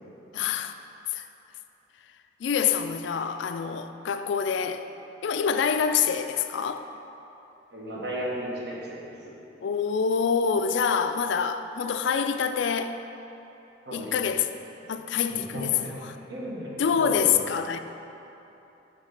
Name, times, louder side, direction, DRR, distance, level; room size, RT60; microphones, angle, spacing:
voice 1, 0.3-0.7 1.1-1.3 2.4-4.9 5.2-6.9 9.6-13.0 13.9-14.5 14.9-16.1 16.8-17.8, left 7 dB, 70° left, 0.3 m, -26 dB
voice 2, 7.7-9.0 13.8-14.1 14.8-14.9 15.3-15.8 16.3-16.7 17.0-17.3, equal, 55° right, 1.3 m, -34 dB
5.9 x 5.6 x 5.7 m
head